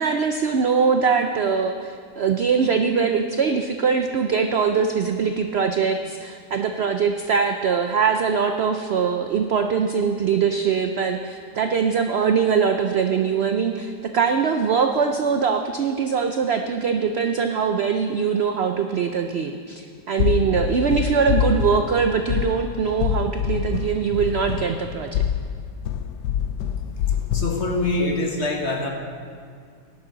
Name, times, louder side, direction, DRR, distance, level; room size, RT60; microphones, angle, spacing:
voice 1, 0.0-25.2, right 6 dB, 80° right, 6 dB, 0.5 m, -22 dB
sound 1, 20.2-27.7, left 8 dB, 90° left, 1.2 m, -25 dB
voice 2, 27.0-28.9, left 2 dB, 45° left, 0 dB, 1.6 m, -25 dB
17.5 x 11.0 x 3.9 m, 2.1 s
omnidirectional pair, 1.8 m